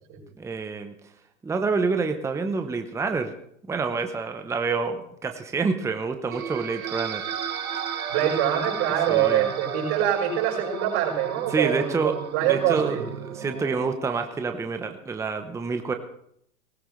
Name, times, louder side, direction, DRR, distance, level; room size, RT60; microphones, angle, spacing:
voice 1, 0.4-0.9 1.4-3.3 3.7-7.2 9.1-9.5 11.5-12.2 12.4-15.9, right 4 dB, 5° right, 6 dB, 0.8 m, -27 dB
sound 1, 6.3-13.9, right 7 dB, 85° right, 1.7 m, -34 dB
voice 2, 8.1-13.0, right 10 dB, 55° right, -2 dB, 5.8 m, -24 dB
19.5 x 16.0 x 3.2 m, 0.72 s
hypercardioid pair, 120°, 41 cm